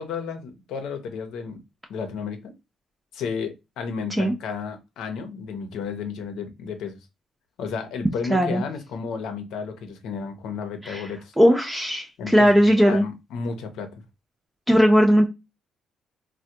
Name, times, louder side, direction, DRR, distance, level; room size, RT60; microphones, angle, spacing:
voice 1, 0.0-1.6 1.9-2.5 3.1-7.0 7.6-11.3 12.2-12.5 12.8-13.9, left 5 dB, 85° left, 0.7 m, -32 dB
voice 2, 8.3-8.6 10.8-11.1 11.4-13.0 14.7-15.2, equal, 10° right, 0.5 m, -18 dB
3.3 x 2.2 x 2.8 m
cardioid pair, 90°, 0 cm